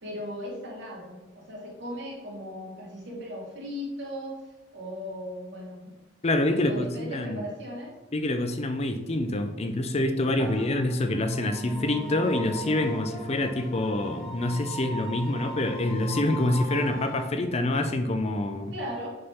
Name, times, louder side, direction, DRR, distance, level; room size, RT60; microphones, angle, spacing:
voice 1, 0.0-4.4 4.7-6.0 6.5-7.9 10.3-10.6 18.7-19.2, equal, 65° right, -3 dB, 2.1 m, -37 dB
voice 2, 6.2-7.4 8.1-18.7, left 1 dB, 35° left, 8 dB, 0.5 m, -26 dB
sound 1, 10.4-17.3, equal, ahead, 1.1 m, -38 dB
6.7 x 3.6 x 5.5 m, 1.1 s
head